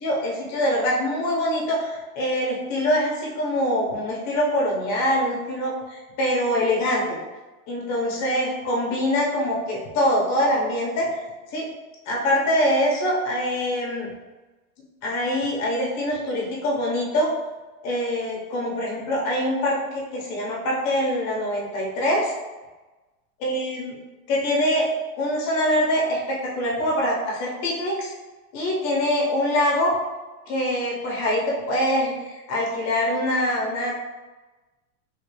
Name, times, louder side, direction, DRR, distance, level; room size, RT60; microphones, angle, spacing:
voice 1, 0.0-7.2 7.7-11.1 11.5-11.7 12.1-14.1 15.0-17.3 17.8-22.3 23.4-24.9 25.2-28.1 28.5-29.9 30.5-33.9, equal, 40° left, -3 dB, 1.1 m, -24 dB
3.3 x 2.7 x 3.2 m, 1.2 s
supercardioid pair, 150°, 42 cm